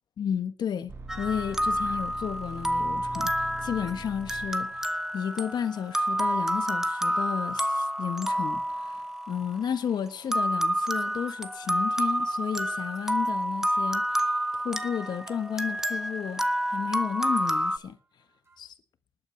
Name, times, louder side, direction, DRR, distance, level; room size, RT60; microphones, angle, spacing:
voice 1, 0.2-0.9 1.2-14.3 14.5-16.4 16.7-18.0 18.6-18.7, left 8 dB, 80° left, 1.4 m, -32 dB
sound 1, 0.9-4.9 10.5-11.9 12.2-12.4 18.5-18.6, right 3 dB, 35° right, 4.6 m, -43 dB
sound 2, 1.1-9.7 10.3-17.8, equal, 5° right, 1.2 m, -29 dB
20.0 x 9.0 x 7.2 m
cardioid pair, 95°, 7 cm